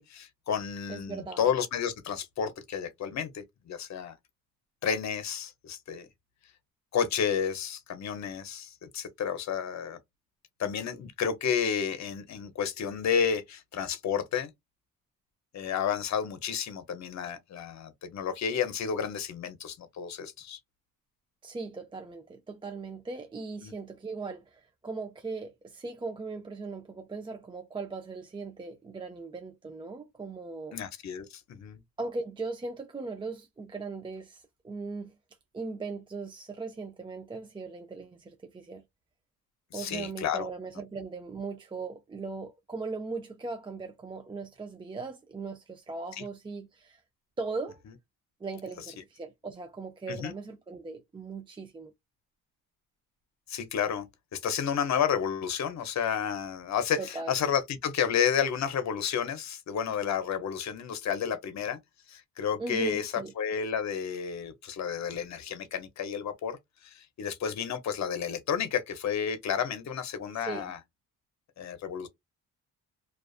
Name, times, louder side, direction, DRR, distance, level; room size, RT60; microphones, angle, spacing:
voice 1, 0.0-4.2 4.8-6.1 6.9-10.0 10.6-14.5 15.5-20.6 23.6-23.7 30.7-31.8 39.7-40.5 50.1-50.3 53.5-54.0 54.3-61.8 62.1-70.8 71.6-72.1, left 7 dB, 50° left, 0.8 m, -31 dB
voice 2, 0.9-1.4 21.4-30.8 32.0-35.2 35.5-38.8 39.7-47.0 47.4-47.8 48.4-51.9 57.0-57.3 62.6-63.3 70.3-70.7, right 3 dB, 15° right, 0.4 m, -39 dB
2.4 x 2.3 x 2.3 m
supercardioid pair, 75°, 34 cm